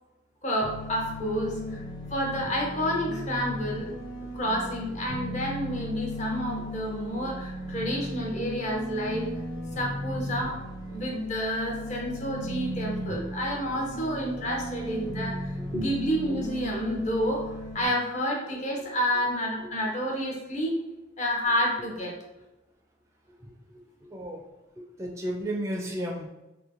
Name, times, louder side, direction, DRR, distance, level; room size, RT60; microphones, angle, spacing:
voice 1, 0.4-1.8 2.1-3.9 4.3-9.3 9.8-10.6 10.9-20.8 21.2-22.1, equal, 40° left, -1 dB, 0.6 m, -29 dB
sound 1, 0.6-17.9, equal, 80° left, 1.0 m, -36 dB
voice 2, 24.1-24.5 25.0-26.3, right 1 dB, 15° right, 0 dB, 0.3 m, -32 dB
2.9 x 2.2 x 2.5 m, 0.98 s
head